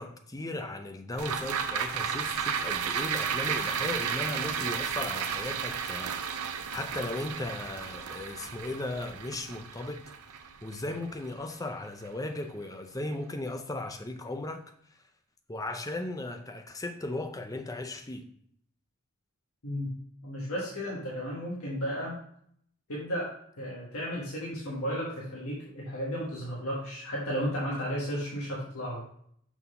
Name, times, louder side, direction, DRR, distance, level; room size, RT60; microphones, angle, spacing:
voice 1, 0.0-6.2 6.7-10.1 10.6-14.6 14.9-15.0 15.5-18.3, left 2 dB, 15° left, 0.5 m, -36 dB
sound 1, 1.2-11.7 12.1-12.2, right 7 dB, 85° right, 0.6 m, -33 dB
voice 2, 19.6-20.0 20.2-22.2 22.9-29.0, equal, 80° left, 1.5 m, -34 dB
6.0 x 3.8 x 5.5 m
head